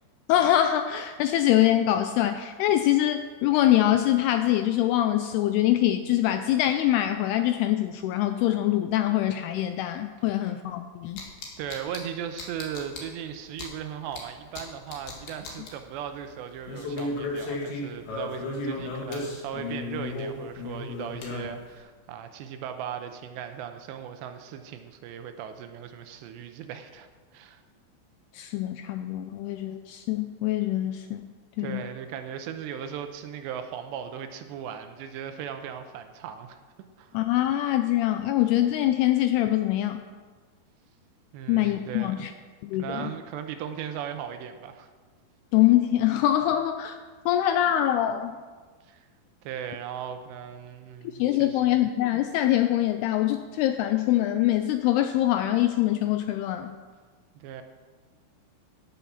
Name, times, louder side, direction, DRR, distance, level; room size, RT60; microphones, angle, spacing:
voice 1, 0.3-11.2 28.3-31.3 31.6-31.8 37.1-40.0 41.5-42.3 42.6-43.1 45.5-47.0 47.3-48.4 51.2-56.8, left 13 dB, 85° left, 8 dB, 2.3 m, -24 dB
sound 1, 11.2-12.0 12.4-13.0 13.6-13.7 14.1-14.2 14.6-14.7 14.9-15.7 16.7-21.7, left 2 dB, 65° left, 3.5 m, -34 dB
voice 2, 11.6-27.1 27.3-27.6 31.6-36.6 37.0-37.2 41.3-42.3 42.7-44.9 48.8-49.1 49.4-51.6 57.3-57.6, right 8 dB, 85° right, 7 dB, 2.9 m, -37 dB
16.5 x 7.0 x 5.8 m, 1.5 s
omnidirectional pair, 5.1 m